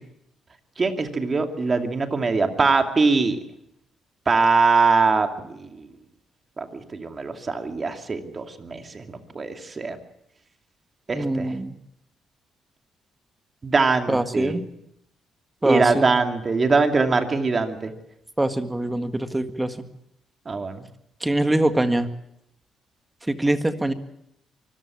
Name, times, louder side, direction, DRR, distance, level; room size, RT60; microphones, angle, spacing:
voice 1, 0.8-3.4 4.3-5.9 6.6-10.0 11.1-11.5 13.6-14.6 15.6-17.9 20.5-20.8, right 4 dB, 35° right, 6 dB, 2.6 m, -22 dB
voice 2, 11.1-11.7 14.1-14.6 15.6-15.8 18.4-19.7 21.2-22.1 23.3-23.9, right 1 dB, 10° right, 9 dB, 1.8 m, -23 dB
24.0 x 14.5 x 8.6 m, 0.78 s
cardioid pair, 90°, 0 cm